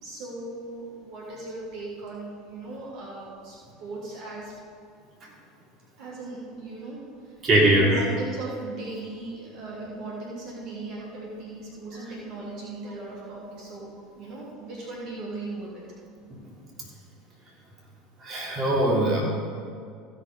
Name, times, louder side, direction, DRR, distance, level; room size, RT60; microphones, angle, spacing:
voice 1, 0.0-4.5 6.0-15.8, right 2 dB, 60° right, -4 dB, 3.1 m, -38 dB
voice 2, 7.4-8.1 18.2-19.2, right 1 dB, 40° right, -4 dB, 3.2 m, -21 dB
15.5 x 5.9 x 5.4 m, 2.3 s
hypercardioid pair, 80°, 0 cm